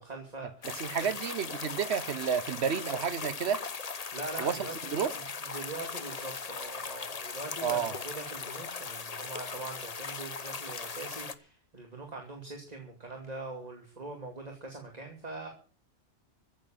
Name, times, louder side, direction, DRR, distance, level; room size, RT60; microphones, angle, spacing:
voice 1, 0.0-1.1 4.1-15.5, right 2 dB, 35° right, 2.8 m, -43 dB
sound 1, 0.6-11.4, left 5 dB, 35° left, 0.9 m, -39 dB
voice 2, 0.6-3.6 4.4-5.1 7.6-7.9, right 7 dB, 65° right, 1.2 m, -31 dB
15.0 x 7.7 x 8.8 m
omnidirectional pair, 1.2 m